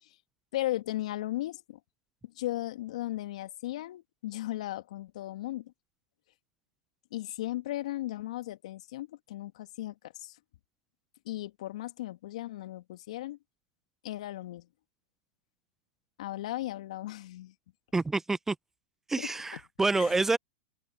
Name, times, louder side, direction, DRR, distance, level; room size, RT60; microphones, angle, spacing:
voice 1, 0.5-1.8 2.2-5.7 7.1-10.4 11.3-13.4 14.0-14.7 16.2-17.5 19.2-19.3 20.0-20.2, left 15 dB, 65° left, 2.4 m, -36 dB
voice 2, 17.9-18.6 19.1-20.4, right 3 dB, 10° right, 0.6 m, -27 dB
hypercardioid pair, 110°, 4 cm